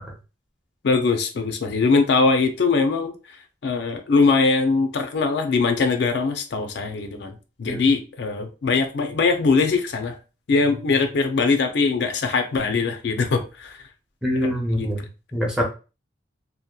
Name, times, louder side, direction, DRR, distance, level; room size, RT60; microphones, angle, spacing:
voice 1, 0.8-3.4 3.6-10.2 10.5-13.8 14.4-14.5 14.8-14.9, left 4 dB, 60° left, 0.4 m, -21 dB
voice 2, 14.2-15.6, equal, 5° right, 0.5 m, -25 dB
2.7 x 2.1 x 2.2 m
head